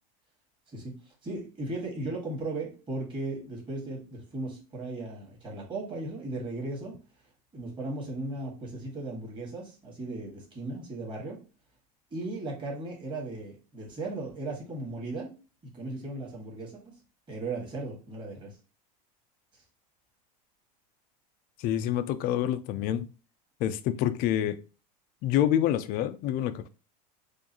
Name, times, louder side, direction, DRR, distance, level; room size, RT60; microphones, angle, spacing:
voice 1, 1.2-7.0 7.5-11.4 12.1-15.3 15.6-16.9 17.3-18.6, right 2 dB, 25° right, 1.8 m, -36 dB
voice 2, 21.6-23.1 23.6-24.6 25.2-26.7, left 11 dB, 45° left, 0.4 m, -27 dB
4.6 x 2.5 x 2.9 m
supercardioid pair, 130°, 21 cm